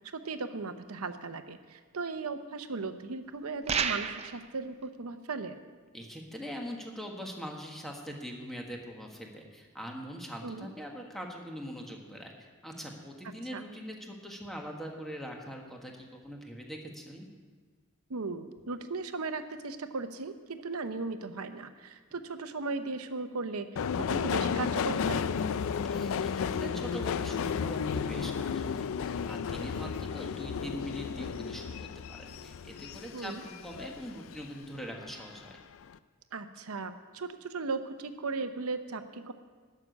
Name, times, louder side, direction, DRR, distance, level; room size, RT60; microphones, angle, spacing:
voice 1, 0.1-5.6 10.4-10.7 13.5-13.6 18.1-25.2 33.1-33.4 36.3-39.3, right 3 dB, 70° right, 9 dB, 0.8 m, -37 dB
sound 1, 3.7-4.4, right 6 dB, 30° right, 0.5 m, -30 dB
voice 2, 5.9-17.3 25.9-35.6, equal, ahead, 0 dB, 1.5 m, -42 dB
Subway metro underground, 23.8-34.5 34.8-35.6 35.8-36.0, left 6 dB, 65° left, 0.4 m, -33 dB
12.0 x 6.7 x 8.4 m, 1.5 s
head